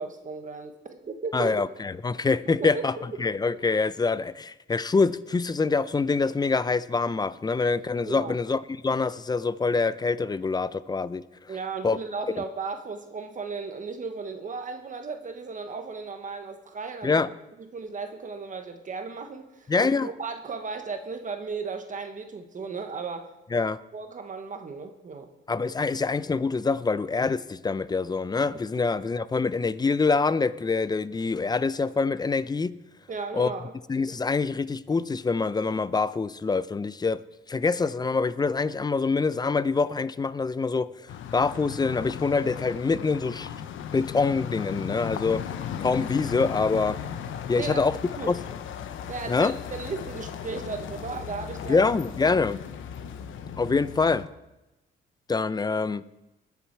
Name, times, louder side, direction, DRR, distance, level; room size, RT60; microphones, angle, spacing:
voice 1, 0.0-1.6 2.6-3.0 8.0-8.3 11.5-17.2 17.6-23.3 23.9-25.3 33.1-33.7 47.5-47.9 48.2-48.3 49.1-51.9 52.3-52.4, right 4 dB, 40° right, 1.1 m, -35 dB
voice 2, 1.3-11.2 11.8-12.0 17.0-17.3 19.7-20.1 23.5-23.8 25.5-32.8 33.3-33.5 33.9-37.2 37.5-43.5 43.9-45.5 45.8-47.0 47.5-48.0 48.3-48.4 49.3-49.6 51.7-52.6 53.6-54.3 55.3-56.0, left 4 dB, 20° left, 0.5 m, -25 dB
sound 1, 41.1-54.3, left 8 dB, 80° left, 0.9 m, -36 dB
20.0 x 7.1 x 4.6 m
cardioid pair, 90°, 20 cm